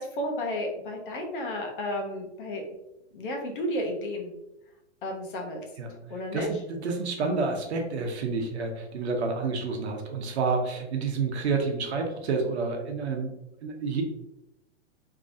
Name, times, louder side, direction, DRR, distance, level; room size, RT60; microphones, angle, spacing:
voice 1, 0.0-2.6 3.1-4.3 5.0-5.6 6.1-6.5, left 1 dB, 45° left, 2 dB, 0.8 m, -32 dB
voice 2, 5.8-13.3 13.6-14.0, right 4 dB, 65° right, 3 dB, 0.9 m, -29 dB
3.7 x 3.0 x 2.6 m, 0.88 s
hypercardioid pair, 165°, 35 cm